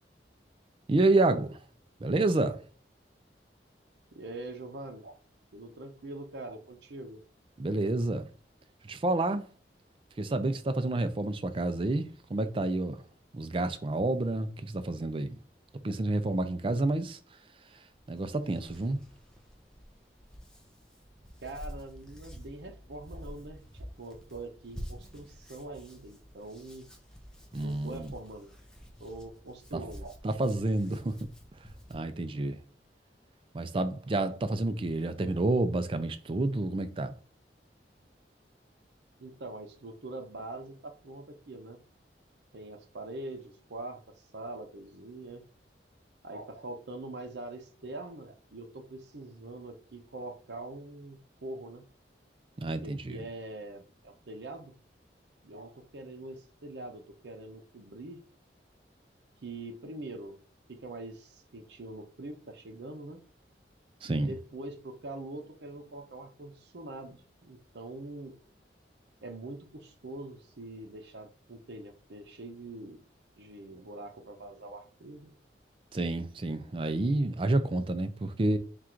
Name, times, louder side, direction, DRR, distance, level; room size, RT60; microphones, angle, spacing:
voice 1, 0.9-1.6 2.0-2.6 7.6-8.3 8.8-9.4 10.2-13.0 13.3-15.4 15.8-17.2 18.1-19.0 27.5-28.1 29.7-29.8 30.2-31.2 31.9-32.6 33.5-37.1 52.6-53.2 64.0-64.3 75.9-78.6, right 2 dB, 30° right, 0.4 m, -29 dB
voice 2, 4.1-5.2 5.5-7.2 21.4-26.9 27.6-28.5 29.0-30.1 39.2-41.8 42.5-44.0 44.3-45.4 46.2-51.8 52.8-54.7 55.4-58.2 59.4-60.4 60.7-63.2 64.0-68.4 69.2-73.0 73.4-75.3, right 2 dB, 75° right, 0.6 m, -43 dB
Hands, 17.9-31.9, equal, 5° left, 0.7 m, -49 dB
3.7 x 2.4 x 4.4 m
head